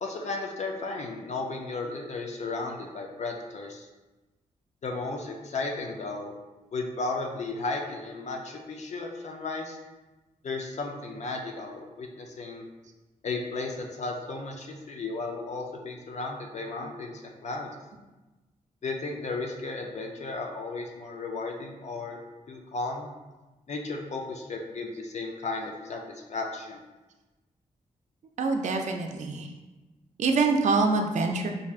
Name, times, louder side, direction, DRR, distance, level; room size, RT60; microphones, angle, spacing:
voice 1, 0.0-3.9 4.8-6.3 6.7-9.8 10.4-12.7 13.2-17.7 18.8-22.2 22.5-23.1 23.7-26.0 26.3-26.8, left 3 dB, 55° left, 1 dB, 0.5 m, -34 dB
voice 2, 28.4-29.5 30.2-31.5, right 3 dB, 60° right, 3 dB, 0.4 m, -25 dB
4.4 x 2.6 x 2.4 m, 1.1 s
wide cardioid pair, 100°, 14 cm